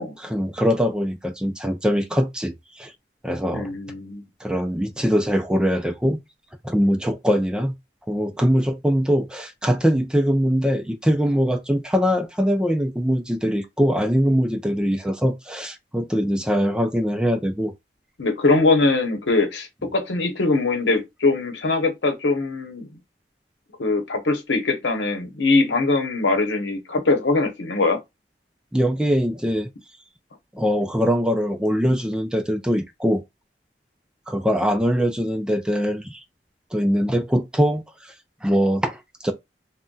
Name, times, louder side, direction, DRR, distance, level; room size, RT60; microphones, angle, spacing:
voice 1, 0.2-2.9 3.2-3.7 4.4-6.2 6.6-7.7 8.1-17.7 28.7-29.7 30.5-33.2 34.3-36.2 36.7-38.1 38.4-39.3, equal, 5° right, 0.3 m, -22 dB
voice 2, 3.5-4.2 18.2-22.9 23.8-28.0, left 3 dB, 90° left, 0.9 m, -22 dB
2.2 x 2.2 x 3.8 m
head